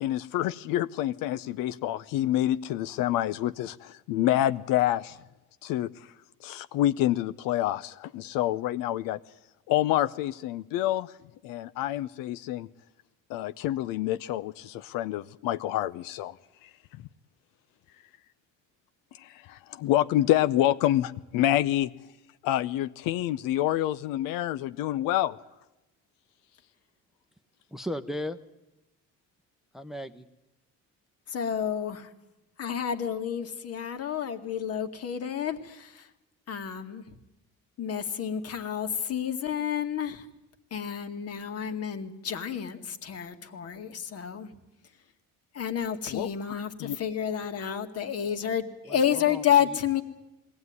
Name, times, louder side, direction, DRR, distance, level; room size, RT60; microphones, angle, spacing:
voice 1, 0.0-5.2 5.6-6.1 6.4-9.2 9.7-11.1 11.4-12.7 13.3-16.4 16.6-16.7 19.2-21.9 22.4-25.4 46.1-46.3 46.8-47.0, left 13 dB, 85° left, 13 dB, 0.7 m, -27 dB
voice 2, 27.7-28.4 29.7-30.3 48.9-49.4, left 1 dB, ahead, 9 dB, 0.8 m, -36 dB
voice 3, 31.3-32.1 32.6-36.1 36.5-37.0 37.8-40.3 40.7-44.5 45.5-50.0, left 9 dB, 45° left, 7 dB, 2.1 m, -30 dB
21.0 x 17.5 x 9.6 m, 0.97 s
cardioid pair, 130°, 32 cm